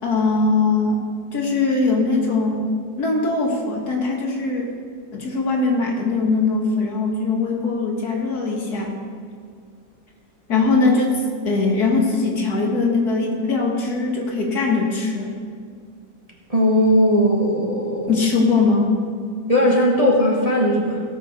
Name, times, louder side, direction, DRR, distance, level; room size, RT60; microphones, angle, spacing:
voice 1, 0.0-2.6 3.0-4.7 5.1-8.9 10.5-15.3 18.1-18.9, left 3 dB, 65° left, 0 dB, 2.1 m, -21 dB
voice 2, 16.5-18.2 19.5-21.0, equal, 25° right, -3 dB, 1.3 m, -18 dB
17.5 x 6.0 x 5.1 m, 2.1 s
omnidirectional pair, 1.8 m